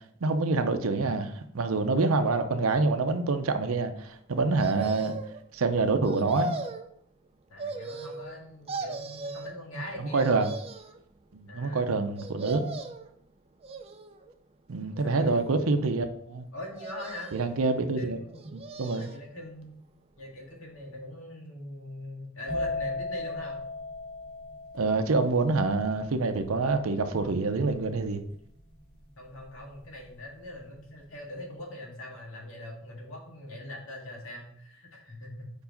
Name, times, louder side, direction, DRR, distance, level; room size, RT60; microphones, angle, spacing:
voice 1, 0.2-5.1 5.5-6.5 10.1-10.5 11.3-12.7 14.7-16.5 17.3-18.2 18.5-19.1 24.7-28.2, right 3 dB, 80° right, 0.6 m, -26 dB
sound 1, 4.6-5.4 6.0-6.9 7.6-8.4 8.7-9.5 10.2-11.0 12.2-13.1 13.6-14.3 15.0-15.7 16.8-17.6 18.3-19.2 19.6-19.7, right 3 dB, 25° right, 0.4 m, -38 dB
voice 2, 7.5-10.5 11.5-11.9 15.0-15.8 16.5-17.4 17.8-18.5 18.9-19.7 20.2-23.7 29.2-35.5, left 1 dB, 75° left, 1.9 m, -42 dB
sound 2, 22.5-30.0 30.3-30.8, left 3 dB, 40° left, 2.1 m, -38 dB
4.8 x 4.7 x 5.2 m
head